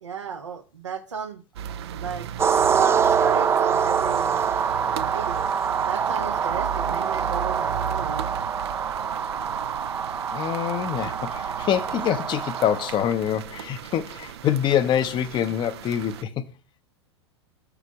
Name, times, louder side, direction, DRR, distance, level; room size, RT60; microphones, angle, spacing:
voice 1, 0.0-1.4 1.9-4.4 4.9-5.5 5.8-8.2, right 6 dB, 85° right, 1.0 m, -34 dB
sound 1, 1.5-16.2, right 9 dB, 65° right, 0.5 m, -36 dB
sound 2, 2.4-13.1, right 7 dB, 15° right, 0.4 m, -25 dB
voice 2, 10.3-16.4, left 10 dB, 30° left, 0.7 m, -25 dB
6.9 x 6.0 x 4.7 m
figure-of-eight pair, 90°, 15 cm